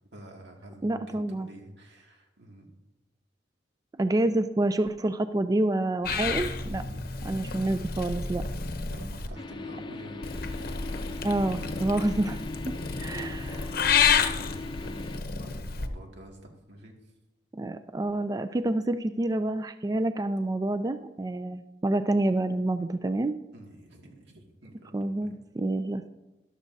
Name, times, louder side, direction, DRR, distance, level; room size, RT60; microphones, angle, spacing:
voice 1, 0.1-2.7 6.7-7.1 8.9-10.5 11.0-11.3 13.5-16.9 23.5-25.3, right 1 dB, 85° right, 1 dB, 2.1 m, -48 dB
voice 2, 0.8-1.5 4.0-6.8 7.2-8.4 11.2-12.4 12.6-13.7 17.5-23.3 24.9-26.1, right 2 dB, 20° right, 10 dB, 0.3 m, -28 dB
Purr / Meow, 6.0-9.3 10.2-15.9, left 6 dB, 55° left, 0.8 m, -30 dB
sound 1, 9.3-15.2, left 3 dB, 25° left, 0.6 m, -39 dB
13.5 x 11.5 x 2.7 m, 1.1 s
head